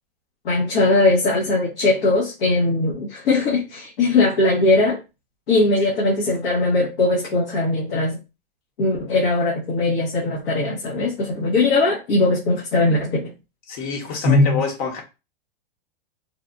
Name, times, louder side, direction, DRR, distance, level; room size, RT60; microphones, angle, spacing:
voice 1, 0.4-5.0 5.5-8.2 8.8-13.3 14.2-14.6, left 2 dB, 75° left, 1.1 m, -20 dB
voice 2, 13.7-15.0, left 6 dB, 40° left, 1.0 m, -27 dB
3.4 x 2.3 x 2.5 m
hypercardioid pair, 135°, 29 cm